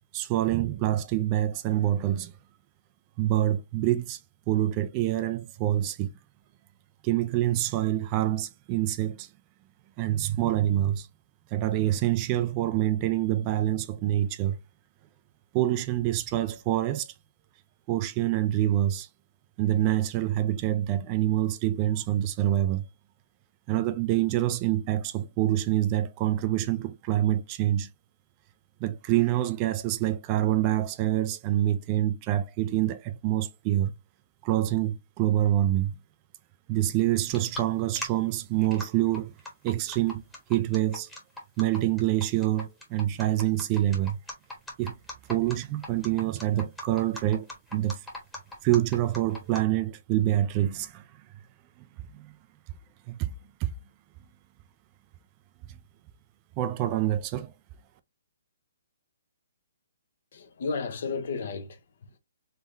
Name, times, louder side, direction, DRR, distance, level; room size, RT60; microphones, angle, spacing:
voice 1, 0.1-2.3 3.2-4.2 4.5-6.1 7.0-9.3 10.0-11.1 11.5-14.6 15.5-17.1 17.9-19.1 19.6-22.8 23.7-27.9 28.8-33.9 34.4-35.9 36.7-39.3 39.6-40.2 40.5-41.1 41.6-44.2 44.8-45.0 45.3-47.5 47.7-48.0 48.6-51.0 52.1-52.3 53.1-53.3 53.6-53.7 56.6-57.5, right 13 dB, 25° right, 0.4 m, -26 dB
sound 1, 37.3-37.6 38.0-38.1 38.6-38.8 39.1-49.6, left 1 dB, 5° left, 1.2 m, -38 dB
voice 2, 60.3-62.2, left 4 dB, 55° left, 0.8 m, -33 dB
3.6 x 3.3 x 2.5 m
hypercardioid pair, 160°, 0 cm